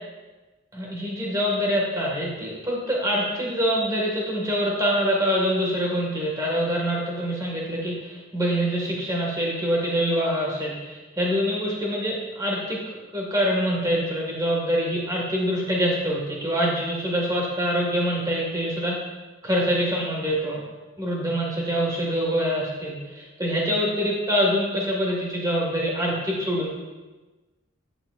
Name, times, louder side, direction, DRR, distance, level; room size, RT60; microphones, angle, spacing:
voice 1, 0.7-12.8 13.1-19.0 19.4-20.6 21.0-26.8, equal, 15° right, -3 dB, 1.9 m, -25 dB
10.0 x 8.8 x 2.6 m, 1.2 s
head